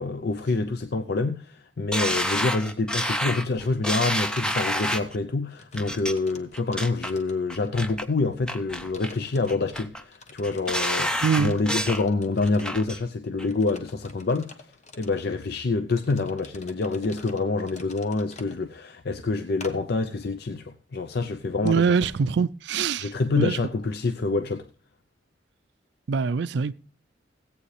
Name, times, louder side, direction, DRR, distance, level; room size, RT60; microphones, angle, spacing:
voice 1, 0.0-14.6 14.9-22.1 23.0-24.7, left 3 dB, 55° left, 0.6 m, -27 dB
sound 1, 1.9-5.2 5.8-6.1 6.5-7.1 7.5-8.0 8.5-9.1 9.5-10.0 10.4-12.0 12.4-13.0 13.4-13.5, equal, 5° left, 0.6 m, -28 dB
sound 2, 5.1-5.2 5.5-7.8 8.2-8.3 8.9-9.8 10.1-12.9 13.4-15.3 15.9-18.6 19.6-19.8, left 3 dB, 35° left, 1.1 m, -47 dB
voice 2, 11.2-11.6 21.6-23.1 23.4-23.6 26.1-26.7, right 5 dB, 60° right, 0.4 m, -23 dB
16.5 x 8.5 x 3.3 m
head